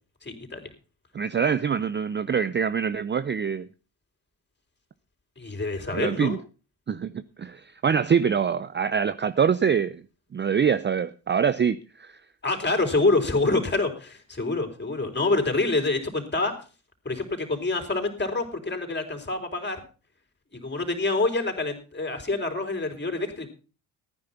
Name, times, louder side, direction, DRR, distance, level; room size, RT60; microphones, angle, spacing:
voice 1, 0.2-0.6 5.4-6.4 12.4-16.5 17.0-19.8 20.5-23.5, left 3 dB, 20° left, 4.6 m, -26 dB
voice 2, 1.1-3.7 5.9-6.4 6.9-10.0 10.3-12.2, right 7 dB, 25° right, 0.6 m, -25 dB
14.5 x 9.8 x 5.8 m
hypercardioid pair, 55°, 48 cm